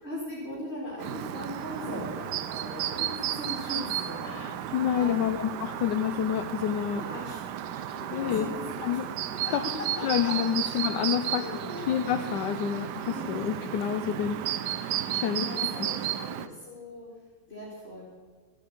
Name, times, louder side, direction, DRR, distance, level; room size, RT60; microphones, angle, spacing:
voice 1, 0.0-5.3 7.0-10.8 11.3-11.9 13.0-13.5 15.3-17.1 17.5-18.0, left 1 dB, 35° left, -4 dB, 3.1 m, -39 dB
Chirp tweet, 1.0-16.5, right 11 dB, 70° right, 1.2 m, -33 dB
voice 2, 4.2-7.0 8.1-8.5 8.8-9.0 9.5-9.6 10.0-11.4 11.8-15.5, left 9 dB, 75° left, 7 dB, 1.3 m, -29 dB
13.5 x 8.7 x 8.5 m, 1.5 s
omnidirectional pair, 2.0 m